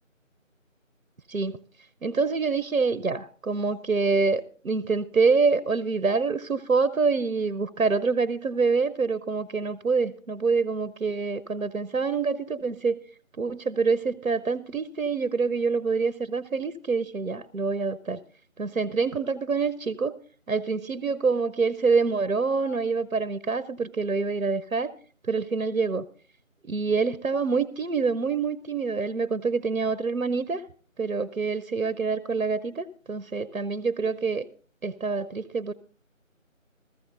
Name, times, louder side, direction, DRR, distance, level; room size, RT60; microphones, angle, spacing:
voice 1, 2.0-13.0 13.4-18.2 18.6-20.2 20.5-24.9 25.3-26.0 26.7-30.6 31.0-34.4 34.8-35.7, right 4 dB, 85° right, 16 dB, 0.9 m, -26 dB
15.0 x 14.0 x 3.8 m, 0.40 s
figure-of-eight pair, 170°, 40 cm